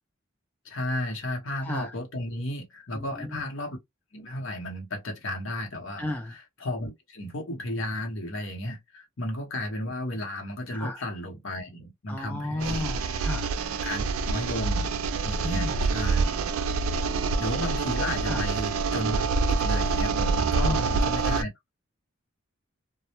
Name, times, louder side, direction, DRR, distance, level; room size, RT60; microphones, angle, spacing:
voice 1, 0.6-3.8 4.1-12.9 13.8-14.9 15.3-16.2 17.4-19.2 19.5-21.5, left 1 dB, 65° left, 0.9 m, -34 dB
voice 2, 1.6-2.0 2.9-3.5 6.0-6.3 10.7-11.0 12.1-13.5 15.4-15.8 18.3-18.5 20.6-20.9, left 1 dB, 10° left, 0.3 m, -33 dB
sound 1, 12.6-21.4, right 4 dB, 80° right, 0.3 m, -26 dB
2.1 x 2.1 x 2.9 m
head